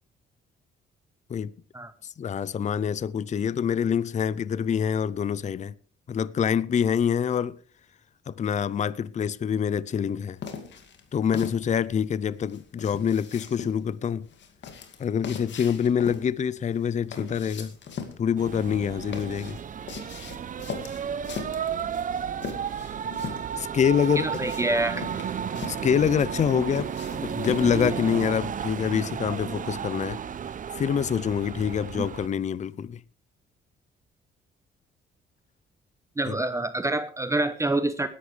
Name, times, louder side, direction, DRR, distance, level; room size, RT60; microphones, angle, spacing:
voice 1, 2.2-5.7 6.1-7.6 8.3-10.4 11.1-14.2 15.0-17.7 18.2-19.6 23.6-24.3 25.7-30.2 30.8-33.0 36.3-36.4, left 7 dB, 35° left, 0.5 m, -26 dB
sound 1, 10.4-27.9, left 6 dB, 65° left, 2.3 m, -40 dB
sound 2, 18.4-32.3, right 8 dB, 40° right, 0.7 m, -33 dB
voice 2, 24.2-25.0 31.9-32.1 36.2-38.1, right 2 dB, 15° right, 0.9 m, -26 dB
20.0 x 11.0 x 3.3 m
cardioid pair, 90°, 20 cm